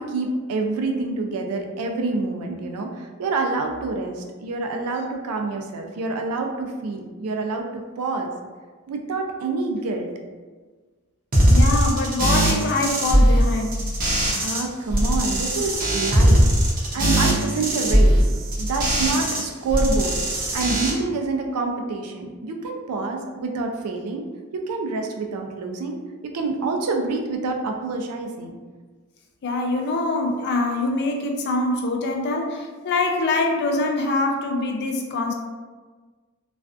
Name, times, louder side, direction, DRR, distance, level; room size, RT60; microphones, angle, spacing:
voice 1, 0.0-8.3 8.9-10.1 14.4-16.5 16.9-18.2 18.6-20.2 20.5-24.3 24.5-26.0 26.2-28.5, right 3 dB, 90° right, 3 dB, 0.4 m, -27 dB
sound 1, 11.3-14.6 14.9-19.4 19.7-20.9, equal, 40° right, 0.5 m, -19 dB
voice 2, 11.5-13.7 29.4-35.3, left 2 dB, 50° left, 2 dB, 0.4 m, -24 dB
2.4 x 2.2 x 2.4 m, 1.4 s
head